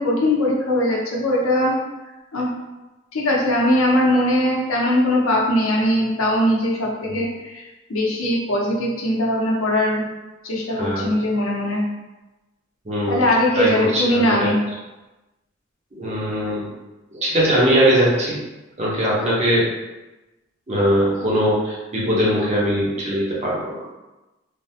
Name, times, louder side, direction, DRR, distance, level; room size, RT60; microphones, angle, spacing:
voice 1, 0.0-1.7 2.3-2.5 3.1-7.6 7.9-10.0 10.4-11.8 13.1-14.6, left 1 dB, 85° left, -2 dB, 0.7 m, -20 dB
voice 2, 10.7-11.1 12.9-13.2 13.5-14.5 15.9-16.7 17.1-18.4 18.8-19.7 20.7-23.8, equal, 35° right, -5 dB, 0.7 m, -21 dB
3.4 x 2.0 x 2.7 m, 1.1 s
head